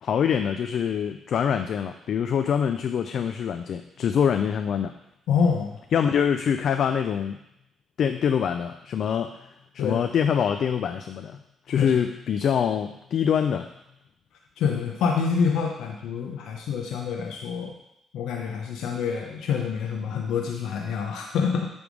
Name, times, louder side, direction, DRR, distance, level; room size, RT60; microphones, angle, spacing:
voice 1, 0.0-4.9 5.9-7.4 8.0-9.5 9.7-11.4 11.7-13.7, left 8 dB, 65° left, 7 dB, 0.4 m, -25 dB
voice 2, 5.3-5.8 9.8-10.0 11.7-11.9 14.6-17.7 18.1-21.7, left 6 dB, 85° left, 1 dB, 0.8 m, -26 dB
8.5 x 3.5 x 6.2 m, 0.82 s
cardioid pair, 90°, 0 cm